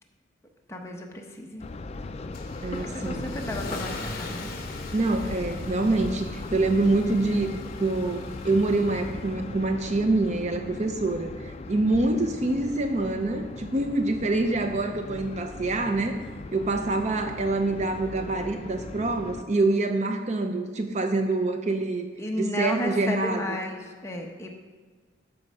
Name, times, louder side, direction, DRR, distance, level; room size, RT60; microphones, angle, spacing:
voice 1, 0.7-1.7 2.8-4.5 22.2-24.5, left 1 dB, 15° left, 1 dB, 0.9 m, -33 dB
sound 1, 1.6-19.4, left 3 dB, 35° left, 0.4 m, -38 dB
Car / Engine starting / Accelerating revving vroom, 2.3-9.4, left 2 dB, 50° left, 1.1 m, -41 dB
voice 2, 2.6-3.3 4.9-16.2 16.5-22.1 22.4-23.6, right 2 dB, 35° right, 6 dB, 0.6 m, -26 dB
12.5 x 4.6 x 5.4 m, 1.5 s
head